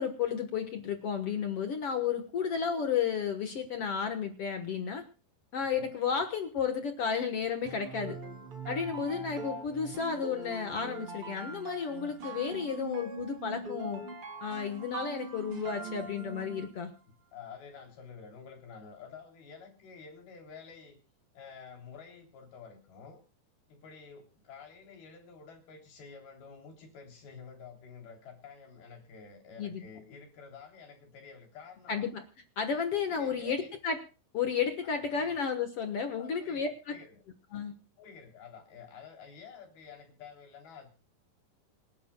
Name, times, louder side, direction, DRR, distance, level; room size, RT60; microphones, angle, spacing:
voice 1, 0.0-5.0 5.5-8.2 8.7-14.0 14.4-16.9 29.6-29.8 31.9-32.2 32.6-34.0 34.3-37.0 37.5-37.7, left 6 dB, 55° left, 7 dB, 1.8 m, -32 dB
voice 2, 5.6-5.9 8.8-9.1 17.3-21.0 21.3-23.2 23.7-32.1 33.0-33.7 34.8-35.4 36.1-37.2 38.0-40.9, left 6 dB, 90° left, 3 dB, 5.4 m, -50 dB
sound 1, 7.6-16.8, right 3 dB, 35° right, 3.6 m, -42 dB
26.5 x 11.5 x 2.3 m, 0.35 s
omnidirectional pair, 4.2 m